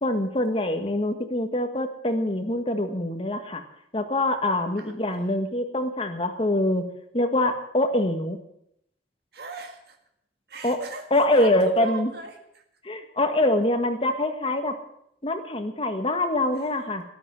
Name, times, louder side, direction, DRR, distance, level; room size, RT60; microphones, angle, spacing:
voice 1, 0.0-3.6 3.9-6.9 7.1-8.4 10.6-10.8 11.1-12.1 12.8-14.7 15.2-17.0, left 1 dB, 30° left, 6 dB, 1.6 m, -24 dB
voice 2, 4.8-5.4 9.3-10.0 10.5-12.6 16.5-16.7, right 3 dB, 65° right, 4 dB, 1.8 m, -38 dB
13.5 x 12.5 x 7.5 m, 0.74 s
head